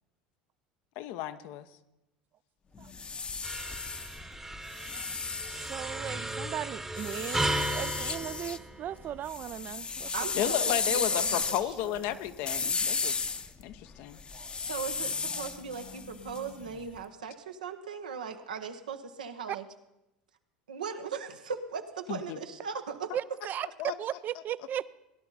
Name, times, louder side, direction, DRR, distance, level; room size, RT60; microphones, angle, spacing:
voice 1, 1.0-1.7 10.3-13.2 13.6-14.2 22.1-22.4 23.8-23.9, left 12 dB, 60° left, 11 dB, 0.8 m, -33 dB
sound 1, 2.7-6.3 7.0-8.6 9.0-16.9, left 5 dB, 25° left, 0.8 m, -34 dB
sound 2, 3.4-9.2, right 1 dB, 10° right, 1.0 m, -35 dB
voice 2, 5.7-10.1 10.4-10.5 14.3-14.6 15.9-16.0 19.5-19.6 23.1-23.7 24.0-24.9, right 10 dB, 45° right, 18 dB, 0.5 m, -37 dB
voice 3, 10.1-12.2 14.6-19.6 20.7-23.1, right 6 dB, 85° right, 6 dB, 1.0 m, -39 dB
17.5 x 11.0 x 4.1 m, 0.94 s
hypercardioid pair, 80°, 4 cm